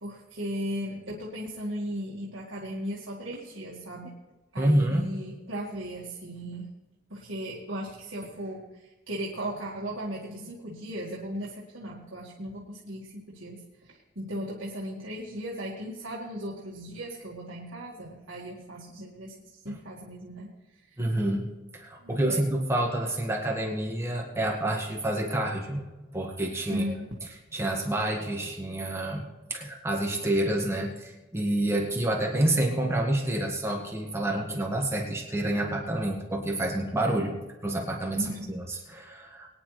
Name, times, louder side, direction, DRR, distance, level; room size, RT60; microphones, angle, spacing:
voice 1, 0.0-4.1 4.5-6.7 7.1-20.5 20.7-21.0 22.0-22.4 26.7-27.1 38.2-38.5, equal, 65° right, -4 dB, 1.9 m, -37 dB
voice 2, 4.6-5.1 21.0-21.5 21.7-25.8 26.1-26.8 27.5-29.3 29.5-37.4 37.6-39.5, right 1 dB, 15° right, 0 dB, 1.7 m, -28 dB
22.5 x 9.9 x 3.3 m, 1.1 s
head